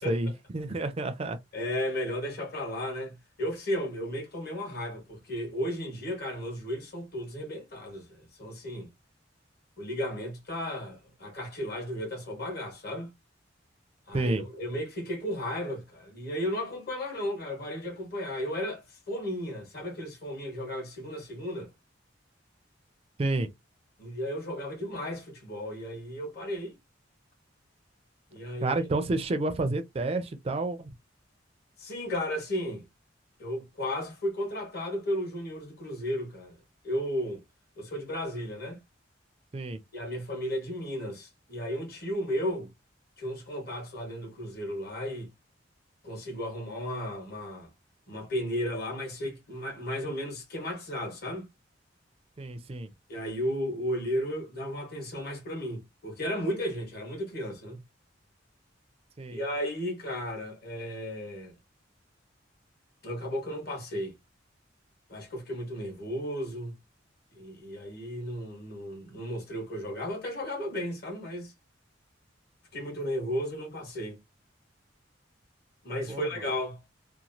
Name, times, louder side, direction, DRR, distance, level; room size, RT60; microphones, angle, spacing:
voice 1, 0.0-1.4 14.1-14.4 23.2-23.5 28.6-30.9 39.5-39.8 52.4-52.9 59.2-59.4 76.1-76.3, right 2 dB, 30° right, 0.4 m, -30 dB
voice 2, 1.5-8.9 9.8-13.1 14.1-21.7 24.0-26.7 28.3-28.9 31.8-32.8 33.4-36.6 36.8-37.4 37.8-38.8 39.9-42.7 43.2-45.3 46.0-47.7 48.1-51.5 53.1-57.8 59.3-61.6 63.0-64.1 65.1-66.7 67.3-71.5 72.7-74.2 75.8-76.8, equal, 55° left, 1.2 m, -34 dB
2.9 x 2.3 x 2.6 m
head